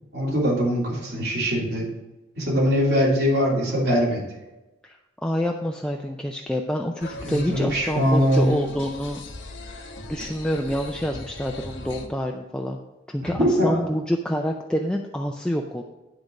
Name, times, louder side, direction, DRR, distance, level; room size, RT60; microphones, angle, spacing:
voice 1, 0.1-1.9 2.3-4.2 7.2-8.6 13.2-13.8, equal, 60° right, -6 dB, 3.1 m, -22 dB
voice 2, 4.8-9.2 10.1-12.8 13.1-15.8, equal, 5° left, 1 dB, 0.4 m, -27 dB
sound 1, 7.0-12.1, left 2 dB, 80° left, 1.2 m, -39 dB
10.5 x 3.9 x 6.0 m, 1.0 s
head